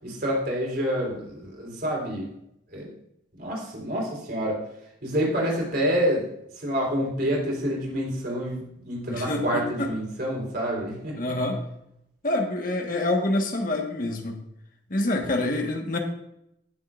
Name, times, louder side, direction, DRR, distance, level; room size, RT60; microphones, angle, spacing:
voice 1, 0.0-2.3 2.7-2.9 3.4-4.6 5.0-6.2 6.5-11.2, equal, 50° right, -2 dB, 4.0 m, -27 dB
voice 2, 9.1-9.9 11.2-11.6 12.2-14.4 14.9-16.0, left 2 dB, 45° left, 2 dB, 1.5 m, -26 dB
18.0 x 7.5 x 2.6 m, 0.78 s
head